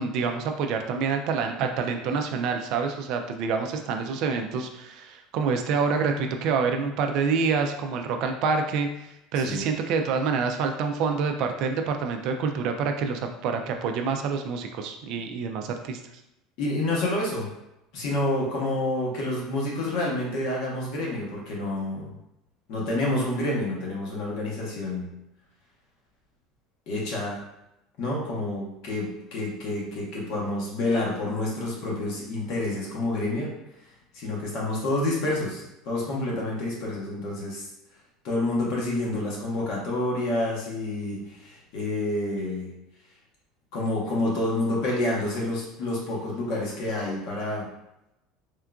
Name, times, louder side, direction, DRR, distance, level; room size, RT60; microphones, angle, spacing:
voice 1, 0.0-8.9 9.3-16.0, right 5 dB, 50° right, 5 dB, 0.3 m, -27 dB
voice 2, 16.6-17.5 17.9-22.1 22.7-25.1 26.9-27.4 28.0-33.5 34.1-37.7 38.2-42.7 43.7-47.7, left 2 dB, 55° left, -3 dB, 1.0 m, -28 dB
3.6 x 2.4 x 2.3 m, 0.89 s
cardioid pair, 160°, 0 cm